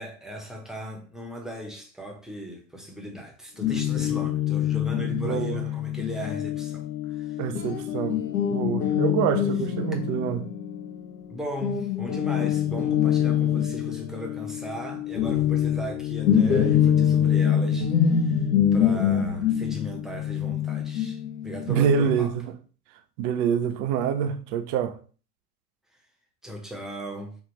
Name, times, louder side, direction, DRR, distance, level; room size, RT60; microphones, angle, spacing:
voice 1, 0.0-7.4 11.3-22.3 26.4-27.4, right 1 dB, ahead, 0.8 m, -37 dB
Guitar, 3.6-11.3 11.6-22.1, left 9 dB, 60° left, 0.9 m, -25 dB
voice 2, 5.0-5.6 7.4-10.4 21.7-22.3 23.2-25.0, right 7 dB, 30° right, 0.4 m, -26 dB
5.3 x 2.4 x 3.0 m
hypercardioid pair, 95°, 49 cm